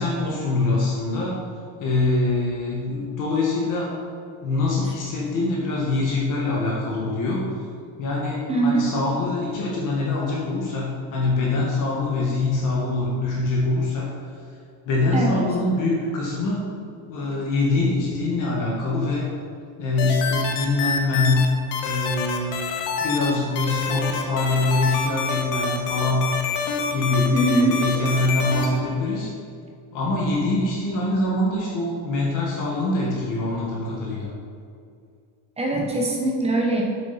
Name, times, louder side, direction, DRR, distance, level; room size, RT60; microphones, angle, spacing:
voice 1, 0.0-1.4 1.8-3.9 4.4-7.5 8.0-14.3 14.8-16.7 17.1-19.3 19.8-21.5 21.8-22.6 23.0-26.3 26.9-29.3 29.9-34.3, left 2 dB, 45° left, -4 dB, 1.6 m, -24 dB
voice 2, 8.5-8.9 15.1-15.4 27.3-27.8 35.6-36.8, right 2 dB, 15° right, 0 dB, 1.0 m, -22 dB
sound 1, 20.0-21.4 21.7-23.3 23.5-28.7, left 5 dB, 85° left, 1.3 m, -27 dB
8.0 x 7.6 x 4.1 m, 2.3 s
cardioid pair, 170°, 42 cm